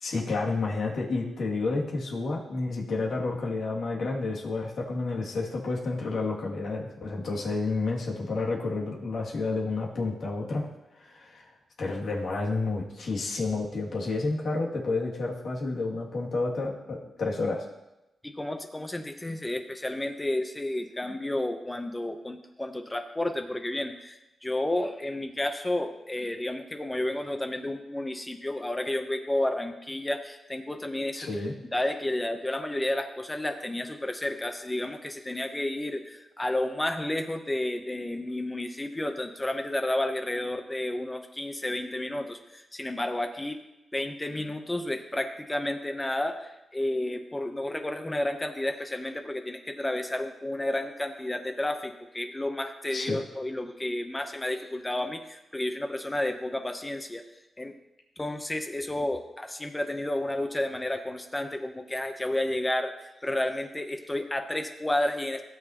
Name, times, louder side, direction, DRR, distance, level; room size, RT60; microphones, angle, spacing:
voice 1, 0.0-10.7 11.0-11.4 11.8-17.6 31.2-31.5 52.9-53.2, left 3 dB, 65° left, -3 dB, 2.4 m, -30 dB
voice 2, 18.2-31.3 31.7-43.6 43.9-57.3 57.6-57.8 58.2-65.4, left 1 dB, 15° left, 6 dB, 0.8 m, -31 dB
17.0 x 6.7 x 3.0 m, 0.96 s
cardioid pair, 70°, 0 cm